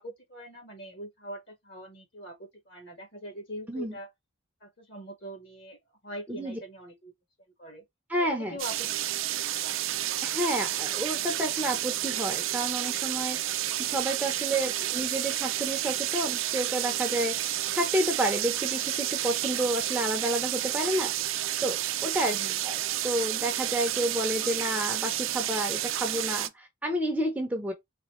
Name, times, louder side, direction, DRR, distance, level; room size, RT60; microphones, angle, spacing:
voice 1, 0.0-4.1 4.6-5.8 6.0-7.1 7.6-7.8 8.2-9.4 14.6-14.7 22.2-22.6, equal, 55° left, 1.5 m, -42 dB
voice 2, 6.3-6.6 8.1-8.6 10.2-21.1 21.6-27.7, right 1 dB, 5° right, 0.6 m, -30 dB
sound 1, 8.6-26.5, right 13 dB, 75° right, 0.5 m, -30 dB
4.1 x 2.2 x 3.1 m
head